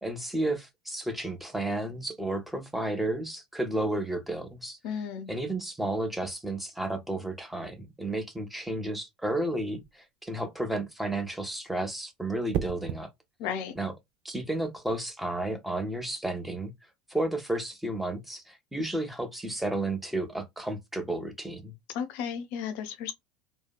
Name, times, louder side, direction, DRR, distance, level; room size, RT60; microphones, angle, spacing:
voice 1, 0.0-5.0 5.3-13.1 13.8-13.9 14.2-16.7 17.1-21.7, right 1 dB, ahead, 0.8 m, -32 dB
voice 2, 4.8-5.3 13.4-13.7 21.9-23.1, left 7 dB, 50° left, 0.5 m, -34 dB
sound 1, 9.7-10.1 12.5-13.1 15.0-15.3, right 9 dB, 45° right, 0.4 m, -33 dB
2.7 x 2.2 x 2.2 m
figure-of-eight pair, 70°, 4 cm